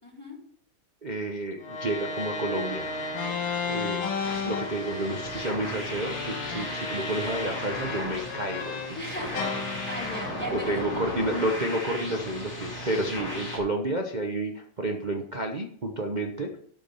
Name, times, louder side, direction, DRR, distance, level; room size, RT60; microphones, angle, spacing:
voice 1, 0.0-0.4 9.0-9.5 9.8-10.8 11.2-11.4, equal, 5° left, -3 dB, 4.3 m, -37 dB
voice 2, 1.0-2.9 3.6-9.1 10.5-16.5, right 1 dB, 90° right, 2 dB, 0.4 m, -30 dB
sound 1, 1.6-9.0 9.3-11.7, left 4 dB, 85° left, 2.1 m, -34 dB
sound 2, 2.6-13.6, left 1 dB, 30° left, 3.0 m, -36 dB
12.5 x 6.1 x 5.3 m, 0.62 s
omnidirectional pair, 2.3 m